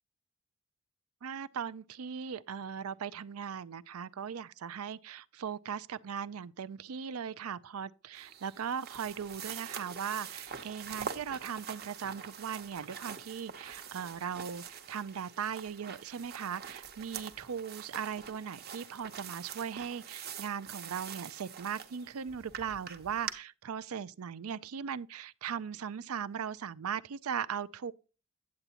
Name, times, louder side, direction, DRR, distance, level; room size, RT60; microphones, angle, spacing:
voice 1, 1.2-27.9, right 7 dB, 85° right, 0.5 m, -38 dB
sound 1, 8.1-23.3, right 7 dB, 50° right, 0.9 m, -45 dB
9.6 x 7.9 x 2.9 m
head